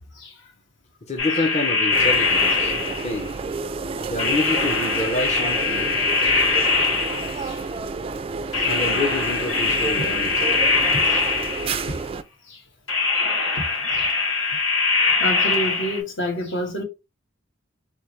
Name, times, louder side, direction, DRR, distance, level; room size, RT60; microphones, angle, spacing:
voice 1, 1.1-3.4 4.1-5.9 8.6-10.5, left 2 dB, 35° left, 0.7 m, -28 dB
sound 1, 1.2-3.3 4.2-7.6 8.5-11.9 12.9-16.0, left 4 dB, 85° left, 2.0 m, -22 dB
sound 2, 1.9-12.2, right 4 dB, 30° right, 0.3 m, -31 dB
voice 2, 7.1-7.6 8.6-8.7 10.9-11.2 11.9-12.2 12.5-12.6 13.9-14.6 15.2-16.8, equal, 65° left, 1.4 m, -30 dB
4.3 x 3.5 x 3.0 m
head